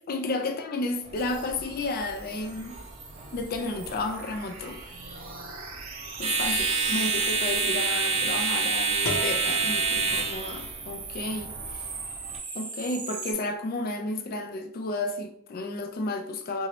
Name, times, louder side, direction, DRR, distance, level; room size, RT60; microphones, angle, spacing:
voice 1, 0.1-2.8 3.3-4.8 6.2-11.9 12.5-16.7, left 2 dB, 45° left, 5 dB, 0.4 m, -32 dB
sound 1, 1.0-12.4, right 4 dB, 30° right, 0.4 m, -29 dB
sound 2, 1.1-8.0 8.4-13.3, right 4 dB, 70° right, 0.7 m, -41 dB
sound 3, 9.0-10.9, equal, 85° left, 0.7 m, -37 dB
2.8 x 2.7 x 2.9 m, 0.70 s
head